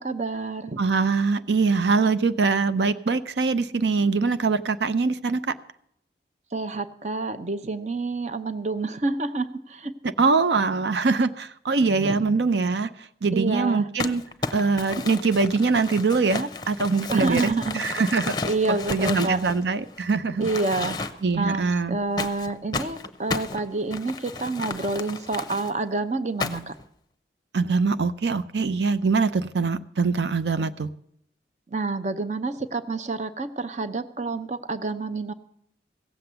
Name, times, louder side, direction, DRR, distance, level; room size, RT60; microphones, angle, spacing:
voice 1, 0.0-0.8 6.5-9.9 12.0-12.2 13.3-13.9 17.1-17.8 18.4-19.4 20.4-26.8 31.7-35.3, right 3 dB, 40° right, 11 dB, 0.7 m, -28 dB
voice 2, 0.8-5.4 10.2-12.9 13.2-14.2 14.5-17.5 17.8-18.4 18.9-20.5 21.2-22.0 27.5-30.9, right 4 dB, 80° right, 12 dB, 0.6 m, -23 dB
Crumpling crinkling, 14.0-20.0 20.4-21.4 22.2-25.7 26.4-26.8, left 3 dB, 25° left, 0.7 m, -33 dB
16.5 x 7.8 x 6.8 m, 0.71 s
head